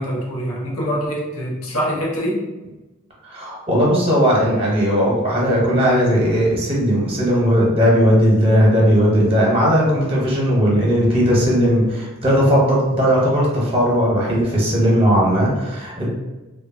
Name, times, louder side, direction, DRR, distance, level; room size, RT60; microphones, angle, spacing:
voice 1, 0.0-2.4, equal, 85° left, -3 dB, 0.6 m, -24 dB
voice 2, 3.2-16.1, equal, 25° right, -4 dB, 0.8 m, -17 dB
2.9 x 2.2 x 2.5 m, 1.1 s
head